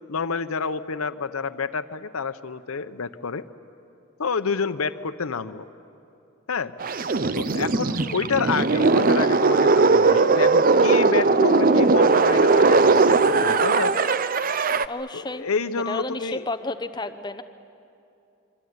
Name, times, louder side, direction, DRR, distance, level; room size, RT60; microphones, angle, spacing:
voice 1, 0.1-3.4 4.2-5.7 6.5-6.7 7.4-13.9 15.1-16.4, left 5 dB, 85° left, 10 dB, 0.8 m, -28 dB
sound 1, 6.8-14.8, right 3 dB, 40° right, 0.6 m, -19 dB
voice 2, 14.9-15.5 15.9-17.4, left 2 dB, 20° left, 9 dB, 0.8 m, -32 dB
26.0 x 24.0 x 9.5 m, 2.7 s
head